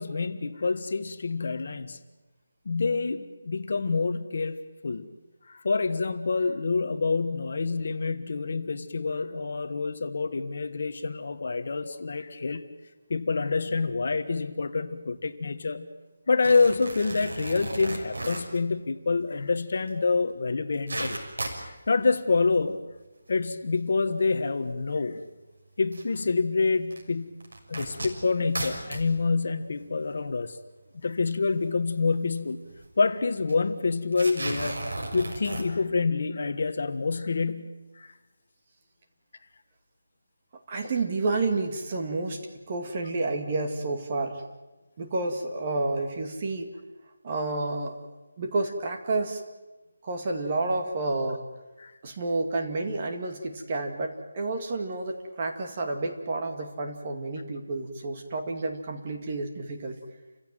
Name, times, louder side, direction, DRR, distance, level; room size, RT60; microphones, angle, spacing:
voice 1, 0.0-2.0 2.6-5.1 5.5-12.6 13.1-15.9 16.3-21.2 21.6-22.8 23.3-25.2 25.8-27.3 27.7-30.6 31.0-32.6 33.0-34.8 35.1-37.7 37.9-38.1 51.8-51.9, left 4 dB, 45° left, 9 dB, 1.4 m, -27 dB
sound 1, 16.4-18.6 19.9-20.0 20.3-20.4 20.6-21.7 22.4-22.7 23.3-23.4 24.5-24.6 25.9-26.0 26.9-27.0 27.4-29.1 29.8-29.9 30.1-30.2 31.9-32.1 32.4-32.5 32.7-32.9 33.5-33.6 34.1-35.6, right 2 dB, 85° right, 6.3 m, -35 dB
voice 2, 40.7-42.4 42.7-44.4 45.0-46.7 47.2-48.0 48.4-49.4 50.0-51.4 52.0-60.0, right 2 dB, 25° right, 3 dB, 2.1 m, -30 dB
29.5 x 16.0 x 9.2 m, 1.1 s
figure-of-eight pair, 175°, 0 cm